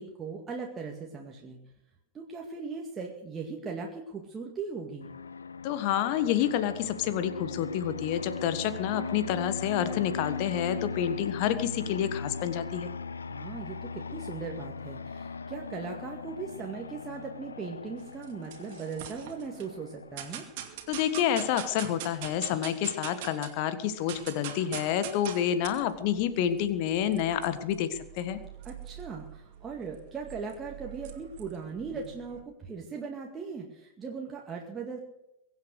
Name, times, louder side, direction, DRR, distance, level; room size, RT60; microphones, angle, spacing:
voice 1, 0.0-1.6 2.1-5.1 13.3-20.5 28.6-35.1, right 5 dB, 20° right, 0 dB, 2.1 m, -39 dB
Fixed-wing aircraft airplane, 5.0-20.2, left 4 dB, 75° left, 0.7 m, -39 dB
voice 2, 5.6-12.9 20.9-28.4, left 10 dB, 45° left, 12 dB, 1.6 m, -29 dB
sound 1, 18.0-19.7 20.2-23.6 23.9-32.4, right 10 dB, 50° right, 2.3 m, -44 dB
23.0 x 8.5 x 6.5 m, 0.87 s
figure-of-eight pair, 90°, 0 cm